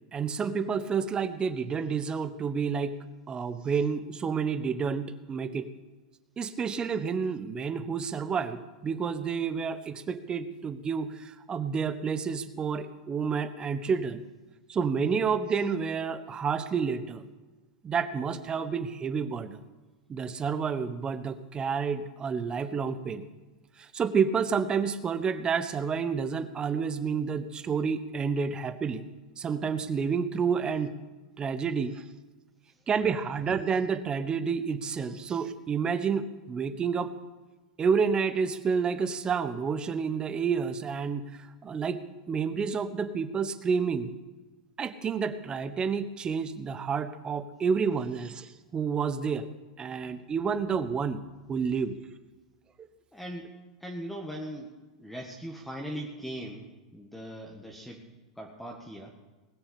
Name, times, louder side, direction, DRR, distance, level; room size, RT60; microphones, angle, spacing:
voice 1, 0.1-3.0 3.3-5.7 6.4-14.2 14.7-17.2 17.8-19.6 20.1-23.2 23.8-29.0 29.4-30.9 31.4-32.0 32.9-37.1 37.8-42.0 42.3-44.1 44.8-49.5 49.8-51.2 51.5-51.9, right 6 dB, 25° right, 11 dB, 1.1 m, -29 dB
voice 2, 53.1-53.5 53.8-54.7 55.0-58.0 58.4-59.1, equal, 5° left, 0 dB, 1.7 m, -39 dB
20.0 x 6.9 x 8.6 m, 1.2 s
hypercardioid pair, 110°, 4 cm